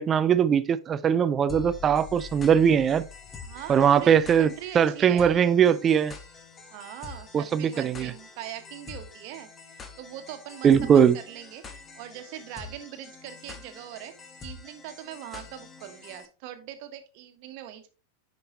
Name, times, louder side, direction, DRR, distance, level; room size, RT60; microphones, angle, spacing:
voice 1, 0.0-3.1 3.7-6.1 7.3-8.1 10.6-11.2, right 8 dB, 25° right, 0.4 m, -21 dB
sound 1, 1.5-16.3, left 5 dB, 20° left, 1.1 m, -45 dB
voice 2, 3.4-4.1 4.4-5.4 6.7-14.1 14.4-17.9, right 12 dB, 45° right, 1.3 m, -42 dB
9.8 x 5.3 x 3.1 m
figure-of-eight pair, 90°, 0 cm